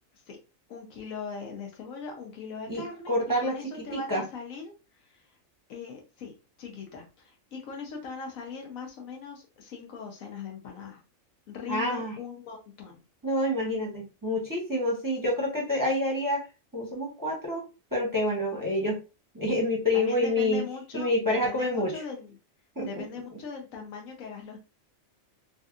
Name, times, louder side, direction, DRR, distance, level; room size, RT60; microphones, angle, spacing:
voice 1, 0.7-4.7 5.0-5.3 5.7-11.0 11.5-13.0 19.9-22.4 22.8-24.6, left 5 dB, 85° left, 1 dB, 1.2 m, -40 dB
voice 2, 2.7-3.6 3.9-4.2 11.7-12.1 13.2-16.5 16.7-19.0 19.3-20.6 20.9-22.0 22.8-23.0, left 1 dB, 20° right, -3 dB, 0.7 m, -28 dB
3.4 x 2.7 x 2.4 m, 0.30 s
omnidirectional pair, 1.4 m